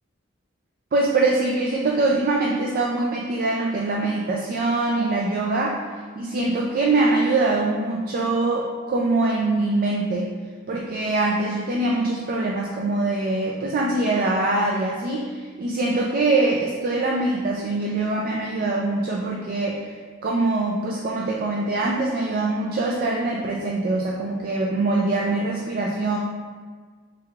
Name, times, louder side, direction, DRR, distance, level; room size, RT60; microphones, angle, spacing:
voice 1, 0.9-5.8 6.1-10.3 10.7-20.0 20.2-26.2, right 2 dB, 45° right, -2 dB, 0.4 m, -23 dB
4.6 x 3.6 x 2.4 m, 1.5 s
head